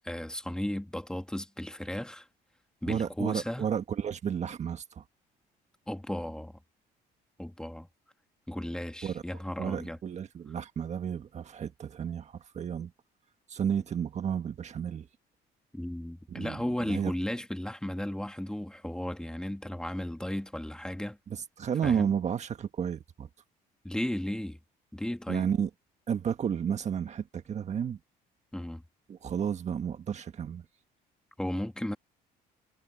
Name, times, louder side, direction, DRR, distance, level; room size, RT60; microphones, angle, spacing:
voice 1, 0.0-2.3 2.8-3.7 5.9-6.5 7.4-7.9 8.5-10.0 15.7-21.2 21.8-22.1 23.8-24.6 24.9-25.5 28.5-28.8 31.4-32.0, left 1 dB, 5° left, 2.1 m, -35 dB
voice 2, 2.9-5.0 9.0-9.2 9.6-12.9 13.5-15.1 16.3-17.1 21.3-23.3 25.3-25.7 26.1-28.0 29.1-30.6, right 8 dB, 45° right, 1.6 m, -32 dB
cardioid pair, 110°, 17 cm